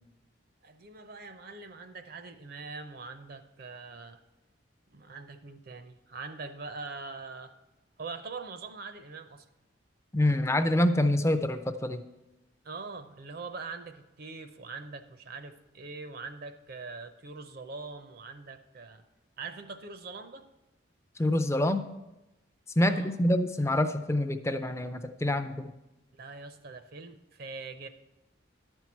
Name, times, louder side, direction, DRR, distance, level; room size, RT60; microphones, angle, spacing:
voice 1, 0.6-4.2 4.9-7.5 8.0-9.5 12.6-19.0 19.4-20.5 22.8-23.2 26.1-27.9, right 4 dB, 50° right, 9 dB, 0.6 m, -43 dB
voice 2, 10.1-12.0 21.2-21.9 22.8-25.7, left 1 dB, 15° left, 9 dB, 0.4 m, -26 dB
11.5 x 4.5 x 7.2 m, 0.97 s
head